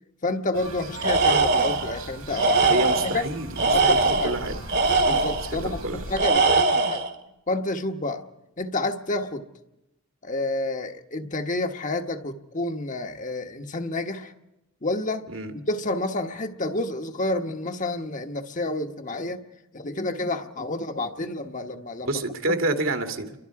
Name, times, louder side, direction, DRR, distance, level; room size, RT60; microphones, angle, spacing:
voice 1, 0.2-2.8 3.0-3.3 3.7-4.3 5.1-7.0 7.5-8.2 8.6-9.4 10.2-14.3 14.8-15.3 15.5-19.4 19.7-22.2 22.5-22.6, left 2 dB, 35° left, 6 dB, 1.2 m, -29 dB
sound 1, 0.5-6.2, right 1 dB, 85° right, 6.7 m, -38 dB
Tools, 1.0-1.9 2.4-3.2 3.6-5.5 6.2-7.1, right 3 dB, 50° right, 1.7 m, -21 dB
voice 2, 2.6-4.6 5.6-6.0 15.3-15.5 22.0-23.3, right 2 dB, 70° right, 5 dB, 2.3 m, -28 dB
29.5 x 24.0 x 4.8 m, 0.93 s
head